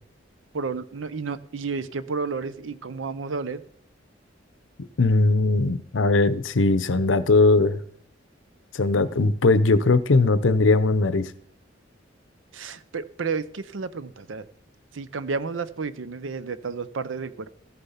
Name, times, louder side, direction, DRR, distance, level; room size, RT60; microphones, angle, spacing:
voice 1, 0.5-3.6 12.5-14.5 14.9-17.5, right 4 dB, 90° right, 0.7 m, -31 dB
voice 2, 5.0-7.8 8.7-11.3, left 3 dB, 85° left, 0.7 m, -19 dB
14.5 x 6.9 x 5.6 m
head